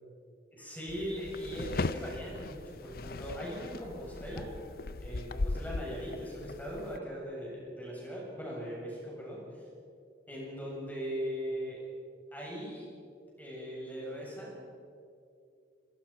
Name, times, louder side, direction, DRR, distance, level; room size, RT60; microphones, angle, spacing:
voice 1, 0.5-4.5 5.0-9.7 10.3-11.8 12.3-12.9 13.4-14.7, equal, 10° left, -4 dB, 7.8 m, -39 dB
sound 1, 0.9-7.0, left 3 dB, 50° left, 0.6 m, -38 dB
27.0 x 23.0 x 5.9 m, 2.4 s
head